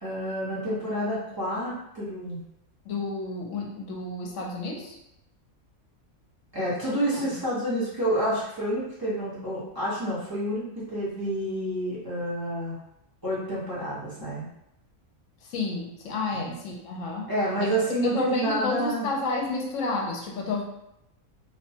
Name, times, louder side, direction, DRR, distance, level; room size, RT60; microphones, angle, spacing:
voice 1, 0.0-2.4 6.5-12.8 13.2-14.5 16.3-16.6 17.3-19.1, equal, 20° right, -9 dB, 0.7 m, -29 dB
voice 2, 2.8-5.0 6.9-7.4 15.4-17.3 17.6-17.7 18.0-20.6, left 3 dB, 70° left, 0 dB, 1.0 m, -31 dB
2.8 x 2.2 x 2.7 m, 0.82 s
omnidirectional pair, 1.5 m